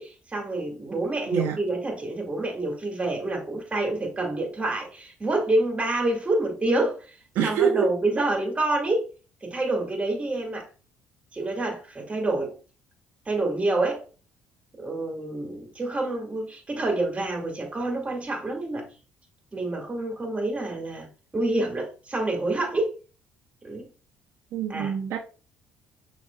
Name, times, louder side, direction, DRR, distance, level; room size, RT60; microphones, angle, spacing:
voice 1, 0.0-7.2 7.4-9.1 9.4-10.7 11.3-12.6 13.3-14.0 14.8-18.9 19.5-21.1 21.3-22.9 23.6-23.9 24.7-24.9, right 2 dB, 25° right, 2.2 m, -27 dB
voice 2, 7.3-7.9 24.5-25.2, right 7 dB, 70° right, 0.8 m, -25 dB
6.4 x 3.4 x 2.4 m
supercardioid pair, 70°, 5 cm